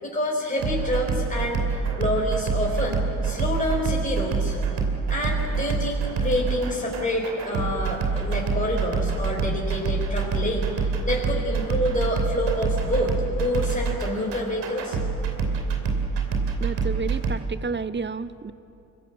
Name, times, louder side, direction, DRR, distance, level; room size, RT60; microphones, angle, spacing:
voice 1, 0.0-1.7 2.0-4.6 5.1-10.7 11.0-15.0, left 1 dB, 20° left, -2 dB, 4.0 m, -27 dB
sound 1, 0.6-17.4, right 4 dB, 75° right, 2.8 m, -26 dB
voice 2, 16.6-18.5, right 4 dB, 25° right, 14 dB, 0.9 m, -30 dB
24.5 x 15.5 x 8.8 m, 2.9 s
hypercardioid pair, 45°, 42 cm